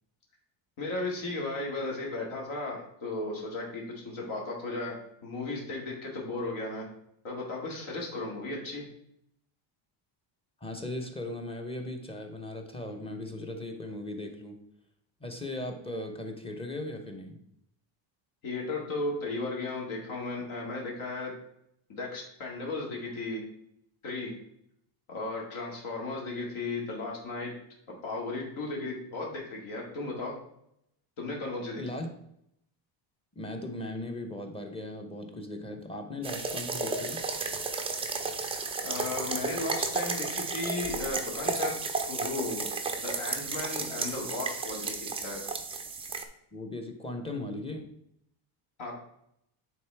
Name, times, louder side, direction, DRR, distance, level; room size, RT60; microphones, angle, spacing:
voice 1, 0.8-6.9 7.2-8.8 18.4-21.3 21.9-23.4 24.0-24.3 25.1-27.5 27.9-30.3 31.2-31.8 38.8-41.8 42.1-42.7 43.0-45.4 48.8-49.0, left 2 dB, 70° left, -2 dB, 2.0 m, -35 dB
voice 2, 10.6-14.6 15.2-17.4 31.8-32.1 33.4-37.2 46.5-47.9, left 1 dB, 10° left, 4 dB, 0.7 m, -38 dB
sound 1, 36.2-46.2, right 4 dB, 15° right, 0.4 m, -33 dB
9.2 x 3.8 x 3.4 m, 0.76 s
cardioid pair, 145°, 49 cm